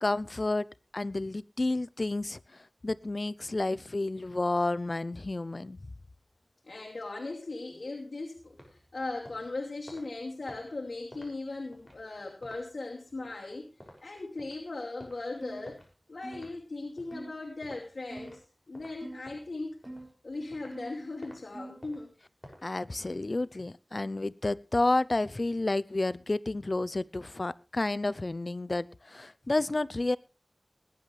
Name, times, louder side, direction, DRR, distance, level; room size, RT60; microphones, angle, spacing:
voice 1, 0.0-0.7 0.9-2.4 2.8-5.8 22.6-30.2, left 2 dB, 55° left, 19 dB, 0.6 m, -30 dB
voice 2, 6.6-13.7 14.0-15.8 16.1-19.8 20.2-22.1, left 2 dB, 80° left, -1 dB, 2.6 m, -38 dB
sound 1, 8.4-18.5 18.7-20.9 21.2-21.4 21.8-23.6, equal, 5° left, 6.6 m, -54 dB
sound 2, 15.4-15.7 16.2-16.5 17.1-17.3 18.1-18.4 19.0-19.3 19.8-20.1 20.7-21.0 21.5-21.8, right 1 dB, 40° right, 5.7 m, -44 dB
20.5 x 11.0 x 3.4 m, 0.31 s
wide cardioid pair, 50°, 0 cm